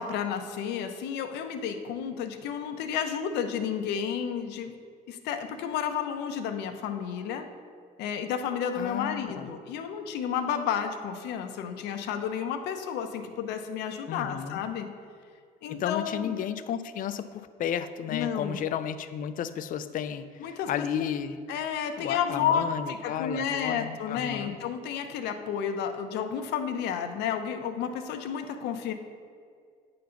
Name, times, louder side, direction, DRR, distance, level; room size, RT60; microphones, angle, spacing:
voice 1, 0.0-4.8 5.1-7.4 8.0-14.9 15.6-16.3 18.1-18.6 20.4-20.9 21.5-28.9, left 8 dB, 85° left, 6 dB, 0.7 m, -31 dB
voice 2, 8.7-9.5 14.1-14.6 15.7-21.4 22.0-24.6, left 9 dB, 55° left, 12 dB, 0.4 m, -33 dB
8.5 x 3.9 x 5.7 m, 2.2 s
cardioid pair, 110°, 17 cm